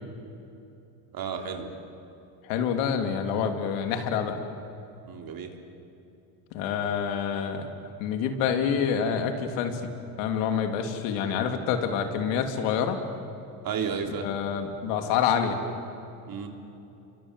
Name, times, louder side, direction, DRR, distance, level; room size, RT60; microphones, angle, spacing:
voice 1, 1.1-1.8 5.1-5.5 13.6-14.3 16.3-16.5, right 6 dB, 50° right, 4 dB, 3.6 m, -32 dB
voice 2, 2.4-4.3 6.5-7.7 8.0-9.8 10.2-13.0 14.2-15.6, left 7 dB, 85° left, 6 dB, 3.1 m, -27 dB
29.5 x 24.0 x 7.7 m, 2.8 s
supercardioid pair, 105°, 46 cm